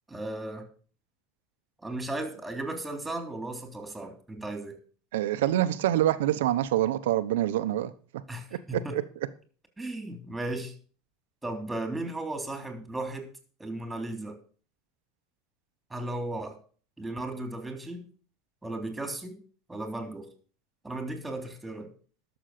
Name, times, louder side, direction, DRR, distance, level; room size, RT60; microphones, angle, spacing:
voice 1, 0.1-0.7 1.8-4.8 8.3-9.0 9.8-10.7 11.4-13.3 13.6-14.4 15.9-16.6 17.0-18.1 18.6-19.4 19.7-20.3 20.8-21.9, right 2 dB, 10° right, 6 dB, 3.2 m, -35 dB
voice 2, 5.1-7.9 8.5-9.0, right 13 dB, 90° right, 12 dB, 1.0 m, -26 dB
11.5 x 7.0 x 6.8 m, 0.42 s
supercardioid pair, 115°, 0 cm